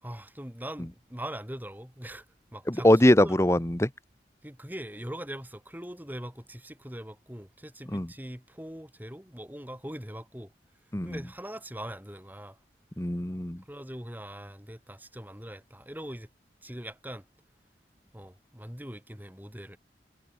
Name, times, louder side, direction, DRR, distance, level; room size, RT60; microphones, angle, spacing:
voice 1, 0.0-2.2 2.5-3.4 4.4-10.5 11.0-12.6 13.6-16.3 16.6-17.2 18.1-19.8, right 1 dB, 10° right, 3.3 m, -41 dB
voice 2, 2.7-3.9 7.9-8.1 10.9-11.2 13.0-13.6, left 1 dB, 15° left, 1.0 m, -22 dB
head